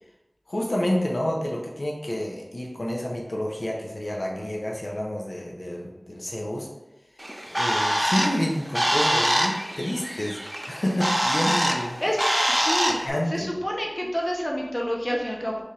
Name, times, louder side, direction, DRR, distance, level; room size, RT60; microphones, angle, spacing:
voice 1, 0.5-6.7 7.5-10.4 10.7-12.0 13.0-13.5, left 1 dB, 85° left, -2 dB, 0.6 m, -29 dB
Bird, 7.2-13.1, equal, 15° right, 0.4 m, -25 dB
voice 2, 12.5-15.6, equal, 25° left, -1 dB, 0.7 m, -28 dB
3.2 x 2.4 x 4.2 m, 0.95 s
wide cardioid pair, 45°, 0 cm